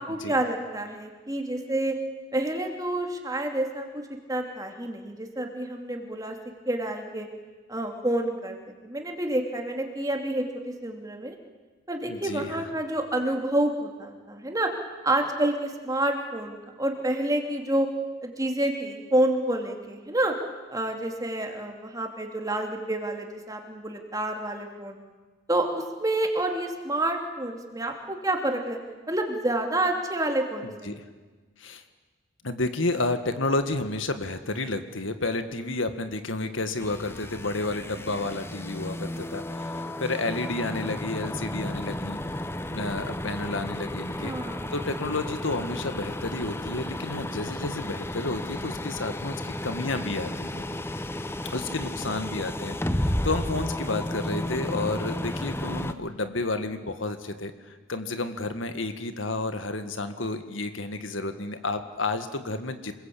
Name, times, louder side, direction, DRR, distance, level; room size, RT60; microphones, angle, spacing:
voice 1, 0.0-2.0 2.3-6.3 6.7-7.3 7.7-8.6 8.8-11.4 11.9-14.7 15.0-17.9 18.2-20.3 20.7-25.0 25.5-28.8 29.1-31.0 44.2-44.7, right 1 dB, 20° right, 3 dB, 2.8 m, -28 dB
voice 2, 12.1-12.6 30.8-31.0 31.6-31.8 32.4-42.2 42.7-44.3 44.7-50.6 51.5-63.0, left 2 dB, 85° left, 9 dB, 1.8 m, -31 dB
sound 1, 36.8-55.9, left 1 dB, 15° left, 0.9 m, -33 dB
27.5 x 21.5 x 8.6 m, 1.3 s
head